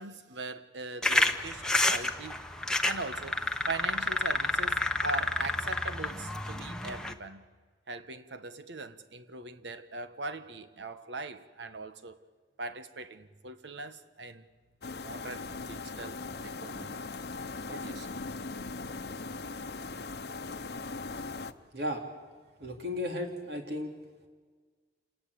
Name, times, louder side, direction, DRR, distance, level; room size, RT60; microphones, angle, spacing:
voice 1, 0.0-2.4 2.8-7.4 7.9-12.2 12.6-14.5 15.0-17.0 17.7-18.1, right 3 dB, 85° right, 1.4 m, -41 dB
sound 1, 1.0-7.1, left 1 dB, 5° left, 1.0 m, -30 dB
sound 2, 14.8-21.5, left 3 dB, 65° left, 0.9 m, -39 dB
voice 2, 22.6-23.9, left 1 dB, 65° right, 3.6 m, -34 dB
28.0 x 19.0 x 8.5 m
head